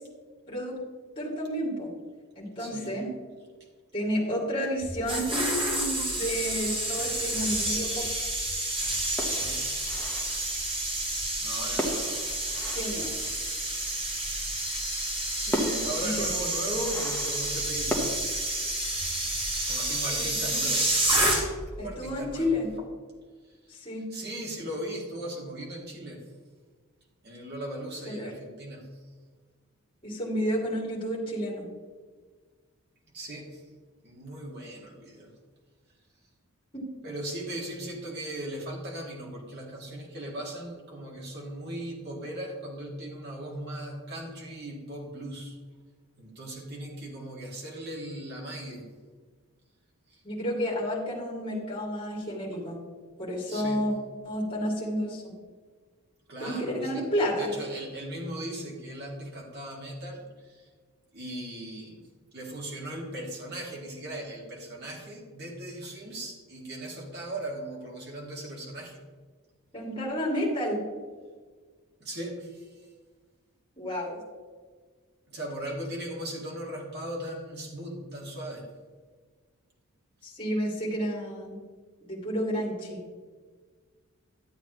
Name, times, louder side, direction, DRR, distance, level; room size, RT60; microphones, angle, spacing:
voice 1, 0.5-0.8 1.2-1.9 2.3-3.1 3.9-8.1 12.7-13.2 16.0-16.4 20.2-20.6 21.8-22.7 23.7-24.1 28.1-28.3 30.0-31.7 36.7-36.9 50.2-52.8 53.2-53.9 54.2-55.3 56.4-57.5 69.7-70.9 73.8-74.2 80.2-81.6 82.1-83.0, equal, 25° left, -4 dB, 2.5 m, -31 dB
voice 2, 2.6-3.0 9.2-9.7 11.4-12.4 15.3-18.3 19.7-21.0 21.7-22.9 23.4-23.8 24.1-26.2 27.2-28.9 33.1-33.7 34.0-35.3 37.0-45.6 46.2-48.9 50.1-50.2 53.5-53.8 56.3-57.1 57.3-60.7 61.1-62.0 62.3-69.0 72.0-72.9 75.3-78.7, right 1 dB, 50° right, -1 dB, 2.1 m, -38 dB
sound 1, 4.8-21.8 22.0-22.3, right 1 dB, 25° right, 1.6 m, -29 dB
sound 2, 9.2-10.6 11.8-13.7 14.9-15.0 15.5-18.2, equal, 10° left, 1.0 m, -35 dB
11.5 x 8.4 x 3.0 m, 1.5 s
head